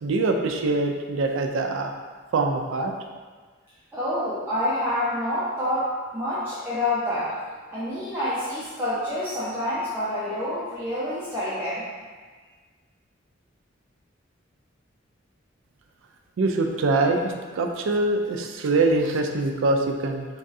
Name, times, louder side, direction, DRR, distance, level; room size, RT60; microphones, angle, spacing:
voice 1, 0.0-1.9 2.3-2.9 16.4-20.2, right 2 dB, 70° right, 3 dB, 0.4 m, -24 dB
voice 2, 3.9-7.4 7.7-11.9, left 1 dB, 10° right, -11 dB, 0.6 m, -27 dB
3.0 x 2.7 x 3.6 m, 1.5 s
head